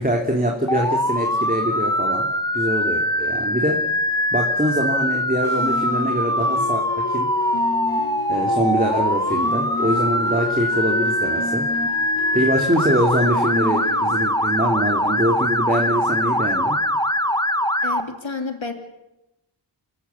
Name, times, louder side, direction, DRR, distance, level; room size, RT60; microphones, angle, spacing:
voice 1, 0.0-2.3 2.5-3.8 4.3-7.3 8.3-11.7 12.3-16.8, right 1 dB, 15° right, 1 dB, 3.2 m, -23 dB
Motor vehicle (road) / Siren, 0.7-18.0, left 1 dB, 10° left, 1.4 m, -22 dB
sound 1, 5.4-14.3, left 3 dB, 50° left, 2.7 m, -31 dB
voice 2, 17.8-18.7, left 4 dB, 70° left, 6 dB, 2.8 m, -30 dB
27.5 x 14.0 x 8.6 m, 0.94 s
wide cardioid pair, 50°, 48 cm